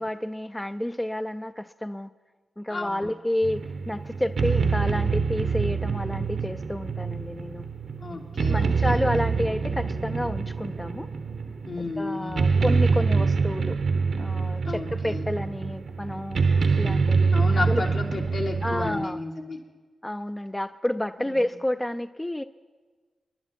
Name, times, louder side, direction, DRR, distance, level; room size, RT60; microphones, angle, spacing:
voice 1, 0.0-2.1 2.6-7.7 8.5-11.1 12.0-13.8 14.2-16.4 16.8-17.8 18.6-19.2 20.0-22.4, left 1 dB, 15° left, 11 dB, 0.4 m, -30 dB
voice 2, 2.7-3.1 8.0-9.2 11.6-12.6 14.6-15.3 17.3-19.6 21.2-21.4, left 3 dB, 70° left, -2 dB, 2.5 m, -33 dB
sound 1, 3.4-19.0, right 4 dB, 65° right, 0.9 m, -25 dB
26.0 x 11.0 x 4.2 m, 1.4 s
supercardioid pair, 45°, 0 cm